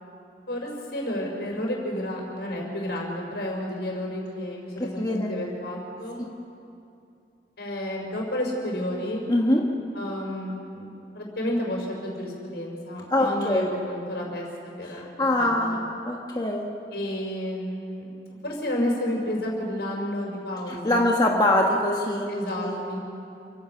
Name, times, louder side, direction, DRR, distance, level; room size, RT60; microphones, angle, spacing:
voice 1, 0.5-6.2 7.6-9.2 9.9-14.5 14.8-15.1 15.4-15.8 16.9-18.1 18.4-21.1 22.3-23.0, left 1 dB, 70° left, -1 dB, 5.3 m, -31 dB
voice 2, 4.8-5.3 9.3-9.6 13.1-13.7 14.9-15.8 16.1-16.7 20.7-22.3 22.6-22.8, left 1 dB, 20° left, -1 dB, 1.3 m, -23 dB
29.5 x 15.5 x 5.8 m, 2.6 s
head